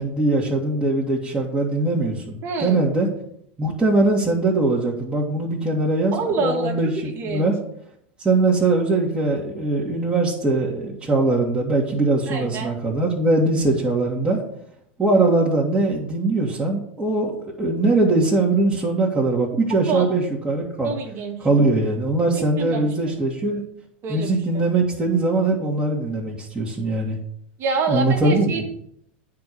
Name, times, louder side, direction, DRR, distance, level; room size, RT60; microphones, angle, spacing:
voice 1, 0.0-3.1 3.6-7.6 8.2-14.4 15.0-20.9 21.4-23.6 24.1-27.2 27.9-28.6, right 2 dB, 10° right, -7 dB, 2.2 m, -21 dB
voice 2, 2.4-2.8 6.1-7.5 12.3-12.7 19.9-20.1 20.8-21.4 22.6-22.9 24.0-24.7 27.6-28.6, right 4 dB, 40° right, 1 dB, 2.0 m, -27 dB
9.2 x 4.8 x 6.9 m, 0.70 s
hypercardioid pair, 110°, 6 cm